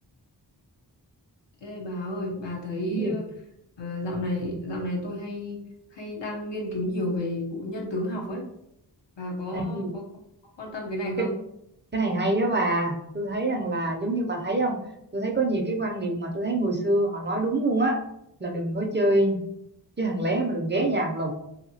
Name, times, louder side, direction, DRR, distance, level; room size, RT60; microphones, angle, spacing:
voice 1, 1.6-3.3 3.8-5.6 5.9-8.5 9.2-10.0 10.6-11.3, left 1 dB, 90° left, -1 dB, 0.8 m, -31 dB
voice 2, 9.5-10.0 11.2-11.3 11.9-14.8 15.1-18.0 18.4-19.4 20.0-21.3, right 2 dB, 25° right, 1 dB, 0.4 m, -25 dB
2.8 x 2.7 x 2.7 m, 0.80 s
wide cardioid pair, 75°, 42 cm